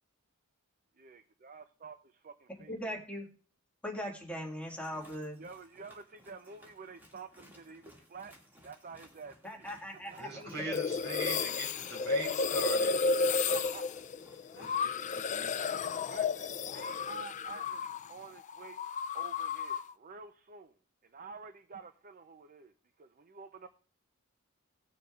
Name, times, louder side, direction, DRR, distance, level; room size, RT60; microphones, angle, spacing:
voice 1, 1.0-3.0 5.4-8.4 8.6-9.6 10.1-10.4 12.9-13.8 16.1-18.8 19.1-20.8 21.0-23.7, right 4 dB, 40° right, 9 dB, 0.6 m, -50 dB
voice 2, 2.7-3.3 3.8-5.4 9.4-10.7, equal, 5° left, 0 dB, 1.9 m, -40 dB
sound 1, 4.6-14.8, equal, 10° right, 2.2 m, -60 dB
voice 3, 10.2-13.0 14.5-16.1, right 2 dB, 65° right, 1 dB, 4.1 m, -42 dB
sound 2, 10.7-18.1 18.4-19.9, left 4 dB, 35° left, 0.4 m, -32 dB
18.5 x 6.8 x 2.4 m, 0.43 s
head